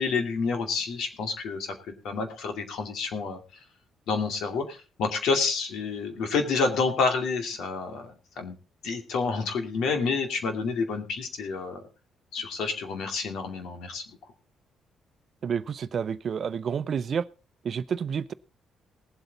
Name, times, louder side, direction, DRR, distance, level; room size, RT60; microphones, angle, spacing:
voice 1, 0.0-1.7 2.0-3.4 4.1-8.6 8.8-11.8 12.3-14.0, left 4 dB, 80° left, 5 dB, 2.5 m, -29 dB
voice 2, 15.4-17.2 17.6-18.3, right 7 dB, 55° right, 15 dB, 0.7 m, -29 dB
19.0 x 7.9 x 4.0 m, 0.33 s
cardioid pair, 90°, 0 cm